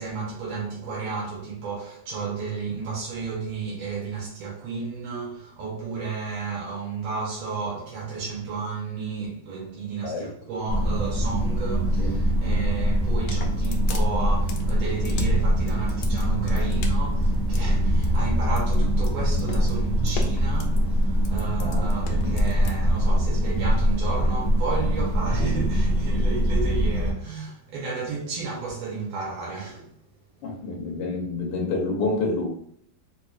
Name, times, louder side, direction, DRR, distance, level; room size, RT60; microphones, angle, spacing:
voice 1, 0.0-29.9, right 4 dB, 85° right, 1.6 m, -32 dB
sound 1, 10.7-27.1, equal, 65° right, 1.0 m, -23 dB
sound 2, 13.0-22.8, left 3 dB, 85° left, 1.5 m, -35 dB
voice 2, 21.6-22.0 22.2-22.3 30.4-32.5, left 3 dB, 70° left, 1.3 m, -28 dB
4.2 x 2.7 x 2.3 m
omnidirectional pair, 2.3 m